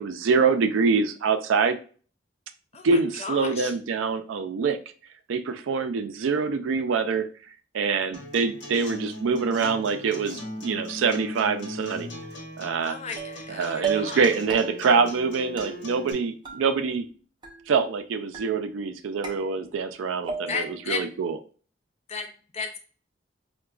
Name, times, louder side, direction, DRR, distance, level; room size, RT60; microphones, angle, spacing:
voice 1, 0.0-1.8 2.8-4.8 5.3-7.3 7.7-12.1 12.6-13.0 13.5-17.0 17.7-21.4, right 5 dB, 85° right, 8 dB, 0.4 m, -25 dB
voice 2, 2.7-3.7 12.8-14.3 20.5-21.1 22.1-22.8, left 5 dB, 35° left, 5 dB, 0.4 m, -34 dB
Acoustic guitar, 8.1-16.1, left 1 dB, 65° left, 1.0 m, -39 dB
sound 1, 13.2-13.5 13.8-14.2 14.5-15.0 15.6-16.2 16.4-17.1 17.4-18.0 18.3-18.9 19.2-19.9 20.3-20.8, right 6 dB, 25° right, 0.5 m, -35 dB
4.7 x 2.2 x 2.3 m, 0.39 s
head